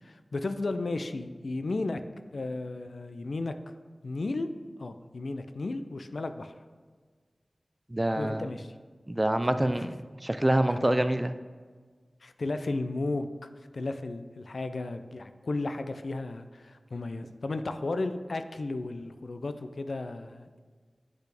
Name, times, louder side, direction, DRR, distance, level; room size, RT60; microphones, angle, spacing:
voice 1, 0.0-2.0 2.3-3.6 4.0-4.5 4.8-6.5 8.2-8.7 9.5-9.7 10.6-11.1 12.2-20.6, left 2 dB, 80° left, 9 dB, 0.3 m, -34 dB
voice 2, 7.9-8.5 9.1-11.3, right 1 dB, 25° right, 10 dB, 0.3 m, -26 dB
8.0 x 4.1 x 3.4 m, 1.5 s
wide cardioid pair, 55°, 0 cm